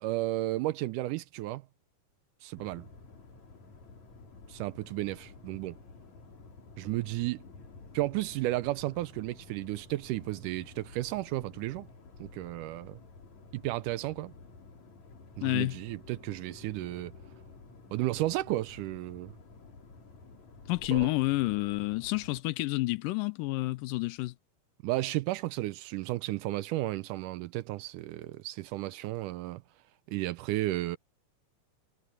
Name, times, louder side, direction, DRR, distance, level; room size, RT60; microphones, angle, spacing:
voice 1, 0.0-1.6 2.4-2.9 4.5-5.8 6.8-7.4 7.9-11.9 12.2-13.0 13.5-14.3 15.4-17.1 17.9-19.3 20.9-21.1 24.8-29.6 30.1-31.0, right 17 dB, 80° right, 2.0 m, -33 dB
sound 1, 2.6-22.4, left 3 dB, 55° left, 5.1 m, -51 dB
voice 2, 15.4-15.8 20.7-24.3, left 21 dB, 80° left, 2.3 m, -29 dB
omnidirectional pair, 3.9 m